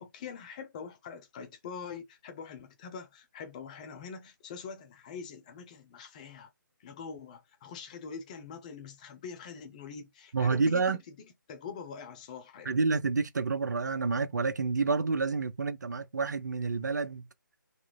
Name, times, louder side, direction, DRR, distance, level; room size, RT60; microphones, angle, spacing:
voice 1, 0.0-6.5 6.8-11.0 11.5-12.8, left 6 dB, 20° left, 0.8 m, -44 dB
voice 2, 10.3-11.0 12.6-17.2, right 4 dB, 60° right, 0.6 m, -29 dB
4.2 x 2.8 x 2.3 m
figure-of-eight pair, 150°, 11 cm